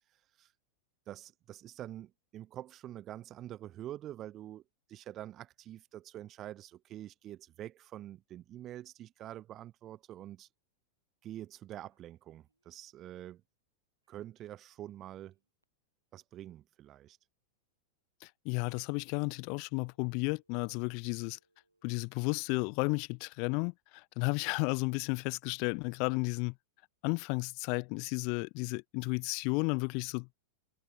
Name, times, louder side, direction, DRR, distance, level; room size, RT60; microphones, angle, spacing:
voice 1, 1.1-4.6 4.9-10.5 11.2-13.4 14.1-15.4 16.1-17.2, right 12 dB, 30° right, 0.7 m, -46 dB
Telephone, 11.8-13.4 14.0-15.6 19.2-22.1, right 2 dB, 85° right, 7.6 m, -80 dB
voice 2, 18.2-21.4 21.8-26.5 27.0-30.4, left 36 dB, 45° left, 0.4 m, -33 dB
figure-of-eight pair, 90°, 0 cm